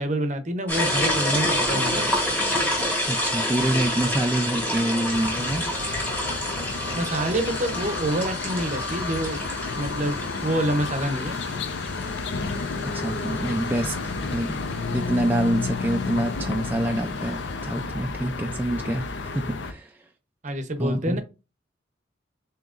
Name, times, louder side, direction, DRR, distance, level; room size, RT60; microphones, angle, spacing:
voice 1, 0.0-2.1 6.9-9.4 9.7-11.4 20.4-21.2, right 1 dB, 40° right, 0.7 m, -27 dB
sound 1, 0.7-15.1, left 1 dB, 10° left, 1.4 m, -28 dB
voice 2, 3.1-5.6 12.9-13.9 14.3-14.6 14.9-20.0 20.8-21.2, right 1 dB, 10° right, 0.3 m, -26 dB
sound 2, 5.1-19.7, left 4 dB, 75° left, 0.6 m, -31 dB
7.2 x 2.9 x 2.4 m
head